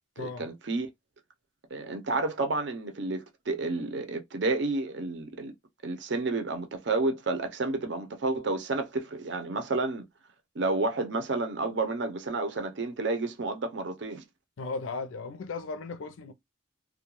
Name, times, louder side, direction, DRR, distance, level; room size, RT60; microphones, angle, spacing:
voice 1, 0.2-0.9 1.7-5.5 5.8-10.1 10.5-14.2, right 3 dB, 60° right, 0.6 m, -30 dB
voice 2, 14.6-16.3, left 4 dB, 80° left, 0.5 m, -36 dB
2.2 x 2.2 x 3.0 m
head